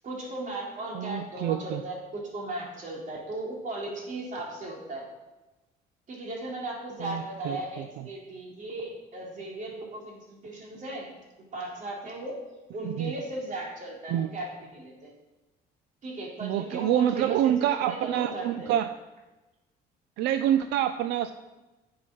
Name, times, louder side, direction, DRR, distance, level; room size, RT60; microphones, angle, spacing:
voice 1, 0.0-5.1 6.1-11.1 11.4-12.4 12.7-15.1 16.0-18.8 20.5-20.6, right 2 dB, 50° right, -2 dB, 3.7 m, -37 dB
voice 2, 0.9-1.8 7.0-8.1 12.8-13.1 14.1-14.3 16.4-18.9 20.2-21.3, right 11 dB, 85° right, 10 dB, 0.5 m, -27 dB
10.5 x 7.4 x 6.2 m, 1.1 s
cardioid pair, 110°, 17 cm